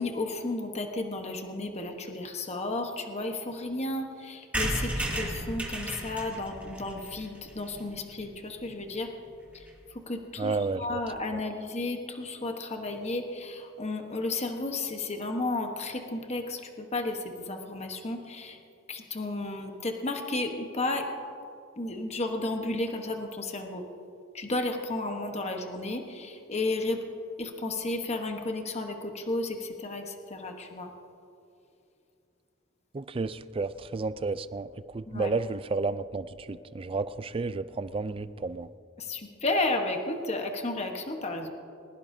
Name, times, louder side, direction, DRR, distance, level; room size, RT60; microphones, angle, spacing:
voice 1, 0.0-9.1 9.5-9.6 9.9-18.6 18.9-21.1 21.8-23.9 24.3-27.0 27.4-30.9 35.1-35.3 39.0-41.5, left 2 dB, 30° left, 4 dB, 1.2 m, -33 dB
sound 1, 4.5-8.2 8.6-8.7 8.9-9.0 9.2-9.3 9.5-9.8, right 1 dB, 5° right, 2.3 m, -34 dB
voice 2, 10.4-11.0 32.9-34.7 34.9-38.7, right 3 dB, 25° right, 14 dB, 0.4 m, -31 dB
21.0 x 20.0 x 2.7 m, 2.6 s
head